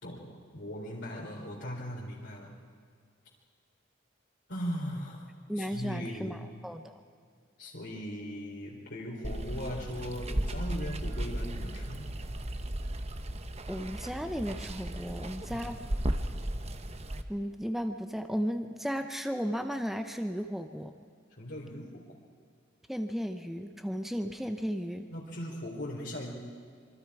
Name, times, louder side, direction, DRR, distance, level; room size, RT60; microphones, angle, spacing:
voice 1, 0.0-2.6 4.5-5.3 5.6-6.5 7.6-12.1 15.5-15.7 21.3-22.0 25.1-26.3, equal, 70° left, -4 dB, 3.7 m, -39 dB
voice 2, 5.5-6.4 6.6-6.9 13.7-15.8 17.3-20.9 22.9-25.1, equal, ahead, 6 dB, 0.8 m, -34 dB
Water, 9.2-17.2, right 1 dB, 35° right, 1.0 m, -35 dB
26.5 x 24.0 x 4.9 m, 2.1 s
head